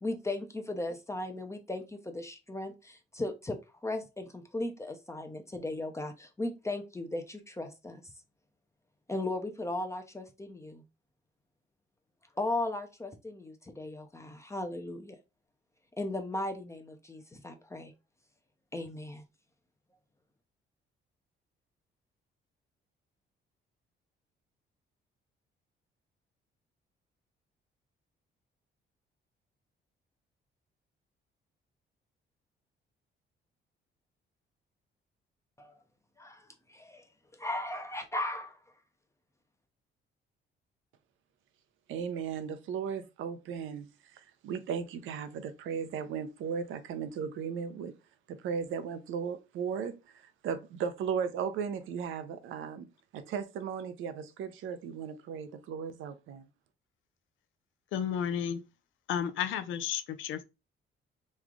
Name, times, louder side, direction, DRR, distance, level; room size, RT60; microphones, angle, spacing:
voice 1, 0.0-8.0 9.1-10.8 12.4-15.2 16.0-17.9 18.7-19.2 35.6-35.7 36.2-37.1 37.4-38.6, left 2 dB, 15° left, 0.6 m, -37 dB
voice 2, 41.9-47.9 48.3-52.9 53.1-56.5, right 7 dB, 85° right, 0.6 m, -36 dB
voice 3, 57.9-58.6 59.1-60.4, left 8 dB, 80° left, 0.5 m, -32 dB
3.1 x 2.3 x 3.7 m
cardioid pair, 90°, 20 cm